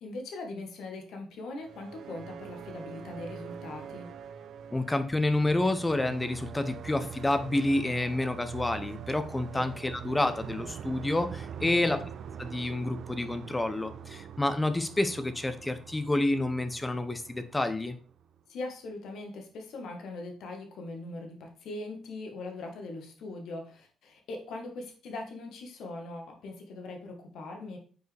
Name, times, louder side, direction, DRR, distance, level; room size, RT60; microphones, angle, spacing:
voice 1, 0.0-4.1 9.5-9.6 11.6-12.0 18.5-27.8, left 2 dB, 75° left, 2 dB, 1.5 m, -41 dB
sound 1, 1.5-18.4, right 8 dB, 70° right, 0.4 m, -44 dB
voice 2, 4.7-12.0 12.4-18.0, left 2 dB, 15° left, 9 dB, 0.7 m, -29 dB
6.4 x 4.6 x 3.4 m, 0.42 s
cardioid pair, 90°, 0 cm